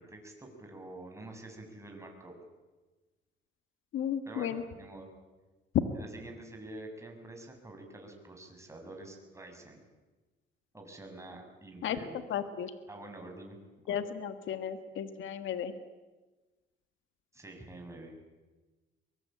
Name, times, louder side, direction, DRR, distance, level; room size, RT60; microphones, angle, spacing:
voice 1, 0.0-2.3 4.3-5.1 5.9-9.8 10.7-12.2 12.9-13.6 13.9-14.0 17.3-18.1, right 2 dB, 15° right, 2 dB, 6.9 m, -47 dB
voice 2, 3.9-4.6 5.7-5.8 11.8-12.0 12.3-12.7 13.9-15.7, left 9 dB, 75° left, 10 dB, 1.7 m, -33 dB
23.0 x 22.5 x 8.8 m, 1.2 s
cardioid pair, 90°, 20 cm